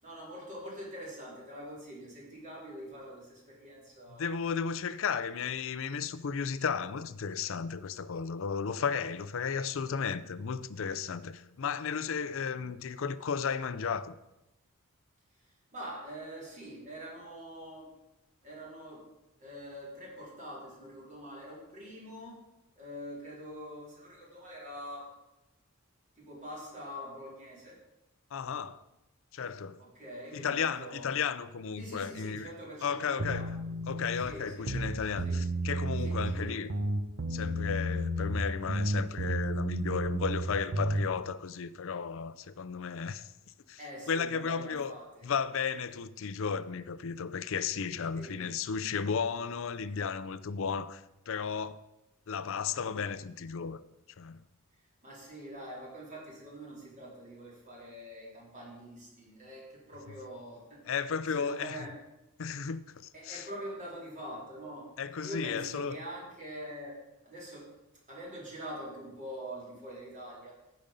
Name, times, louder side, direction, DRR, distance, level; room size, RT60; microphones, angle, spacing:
voice 1, 0.0-4.3 15.7-17.9 18.4-19.0 19.4-22.4 22.8-25.1 26.2-27.8 29.8-31.2 31.8-33.5 34.2-34.7 35.2-35.4 36.0-36.7 43.8-45.2 48.1-48.4 48.7-48.9 55.0-60.8 61.3-61.9 63.1-67.0 67.2-67.7 68.1-70.6, equal, 35° right, 4.2 m, -44 dB
voice 2, 4.1-14.1 28.3-28.8 29.3-29.8 30.3-32.5 32.8-33.5 33.9-36.7 37.3-43.3 43.7-43.8 44.1-44.9 45.2-51.8 52.3-53.8 54.2-54.4 60.9-61.9 62.4-63.5 65.0-66.0, left 6 dB, 65° left, 0.5 m, -34 dB
sound 1, 33.2-34.2 34.6-36.4 36.7-38.4 38.7-41.1, right 1 dB, 60° right, 0.9 m, -32 dB
14.5 x 5.2 x 5.3 m
head